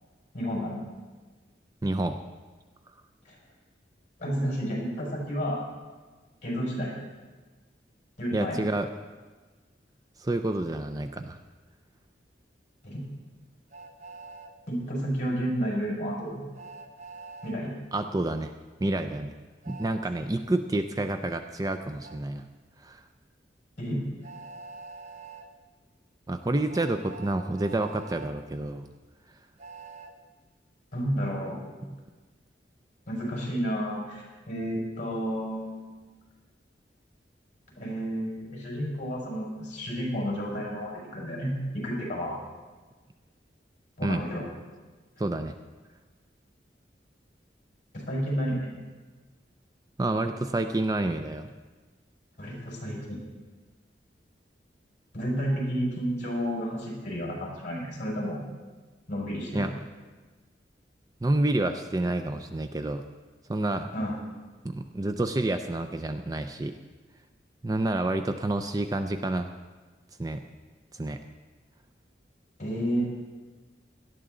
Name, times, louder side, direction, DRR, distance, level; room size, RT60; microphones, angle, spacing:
voice 1, 0.3-0.8 3.2-3.3 4.2-5.6 6.4-7.0 8.2-8.6 12.8-13.0 14.7-16.4 17.4-17.7 23.8-24.0 30.9-31.6 33.1-36.0 37.8-42.4 44.0-44.4 47.9-48.7 52.4-53.2 55.1-58.4 59.1-59.7 63.9-64.1 72.6-73.1, equal, 45° left, -3 dB, 5.1 m, -31 dB
voice 2, 1.8-2.2 8.3-8.9 10.2-11.4 17.9-18.5 18.8-19.3 19.7-22.5 22.8-23.0 26.3-28.9 44.0-44.2 45.2-45.5 50.0-51.5 59.5-59.7 61.2-63.0 63.5-63.9 64.6-66.8 67.6-69.5 70.2-70.4 70.9-71.2, right 2 dB, 20° right, 8 dB, 0.4 m, -28 dB
Train, 13.7-14.5 16.6-17.6 19.6-20.0 22.0-22.2 24.2-25.5 26.7-28.3 29.6-30.1, right 4 dB, 40° right, 0.9 m, -45 dB
18.0 x 12.0 x 3.8 m, 1.3 s
head